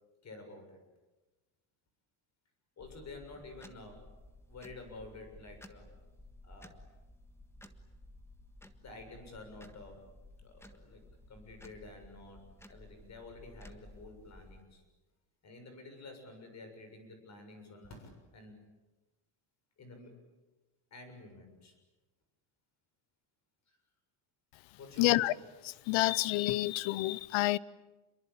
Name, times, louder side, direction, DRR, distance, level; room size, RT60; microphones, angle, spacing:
voice 1, 0.2-0.8 2.8-4.0 4.5-5.9 6.4-6.8 8.8-10.1 10.4-14.8 15.4-18.6 19.8-20.2 20.9-21.7 23.7-23.8 24.8-25.3, left 3 dB, 35° left, 7.2 m, -50 dB
sound 1, 2.8-14.6, left 1 dB, 5° left, 1.5 m, -55 dB
voice 2, 25.0-25.3 25.9-27.6, left 18 dB, 75° left, 0.9 m, -28 dB
28.5 x 23.0 x 8.7 m
cardioid pair, 155°, 48 cm